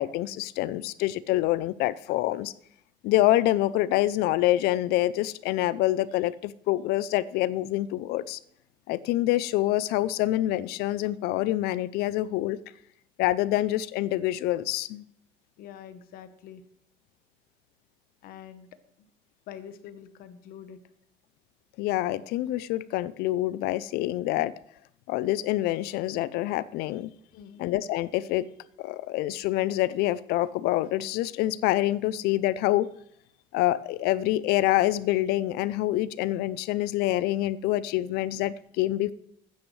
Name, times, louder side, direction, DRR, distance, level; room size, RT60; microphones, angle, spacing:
voice 1, 0.0-2.5 3.0-8.4 8.9-12.6 13.2-15.0 21.8-24.5 25.1-27.1 27.6-28.5 28.8-32.9 33.5-39.1, left 15 dB, 90° left, 18 dB, 0.5 m, -26 dB
voice 2, 15.6-16.6 18.2-18.7 19.0-19.1 19.5-20.8 27.3-27.6, left 9 dB, 65° left, 11 dB, 1.1 m, -45 dB
14.5 x 9.4 x 3.2 m, 0.73 s
cardioid pair, 155°, 16 cm